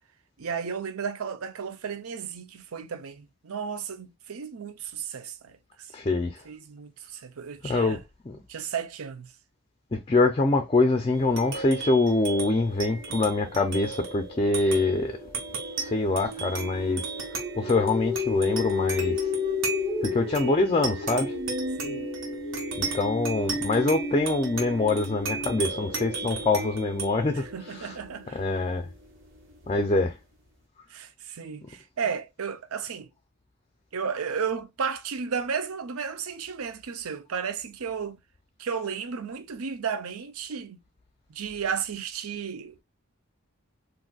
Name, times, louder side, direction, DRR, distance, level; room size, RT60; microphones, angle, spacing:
voice 1, 0.4-5.9 6.5-8.0 8.5-9.3 21.8-22.0 27.5-28.4 30.9-33.1 33.9-38.2 38.6-40.8 41.3-42.8, right 6 dB, 85° right, 0.6 m, -33 dB
voice 2, 5.9-6.4 7.6-8.0 8.2-8.4 9.9-15.2 15.8-17.1 17.6-19.3 20.0-21.4 22.8-28.0 28.3-28.9 29.7-30.1, left 2 dB, 25° left, 0.4 m, -25 dB
sound 1, 11.1-30.0, right 3 dB, 60° right, 1.2 m, -35 dB
sound 2, 13.0-13.1 14.9-26.0, left 4 dB, 25° right, 1.1 m, -33 dB
3.9 x 2.6 x 2.3 m
head